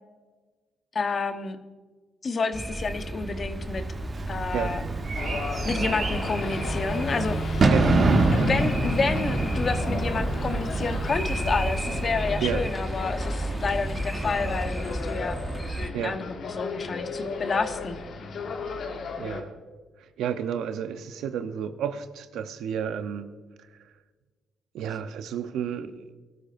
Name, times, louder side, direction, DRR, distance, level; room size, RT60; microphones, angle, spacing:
voice 1, 0.9-1.6 2.2-3.8 4.3-4.8 5.6-7.7 8.3-15.4 16.0-18.0, left 4 dB, 40° left, 1.1 m, -29 dB
sound 1, 2.5-15.9, right 1 dB, 10° right, 0.8 m, -32 dB
Bird / Fireworks, 3.6-12.8, right 3 dB, 45° right, 1.9 m, -27 dB
voice 2, 4.5-4.8 7.7-8.5 12.4-12.8 15.9-16.2 19.2-19.6 20.0-23.9 24.7-26.1, right 8 dB, 80° right, 0.8 m, -32 dB
sound 2, 5.2-19.4, left 4 dB, 65° left, 1.7 m, -35 dB
21.5 x 13.5 x 2.6 m
cardioid pair, 90°, 0 cm